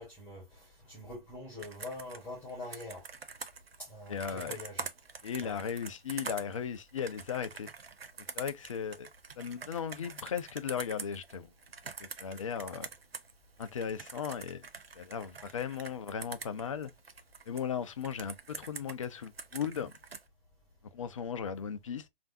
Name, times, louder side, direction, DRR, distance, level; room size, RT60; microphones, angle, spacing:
voice 1, 0.0-3.0 3.8-4.9 5.4-5.6, left 1 dB, 5° left, 1.2 m, -44 dB
Computer keyboard, 1.6-13.3 13.6-17.6 18.0-20.2, right 5 dB, 85° right, 0.6 m, -45 dB
voice 2, 4.1-4.6 5.2-7.7 8.4-9.1 9.4-11.5 12.0-12.9 13.6-14.7 15.0-16.9 17.5-19.9 20.9-22.1, left 7 dB, 35° left, 0.4 m, -36 dB
3.3 x 2.5 x 2.5 m
figure-of-eight pair, 125°, 29 cm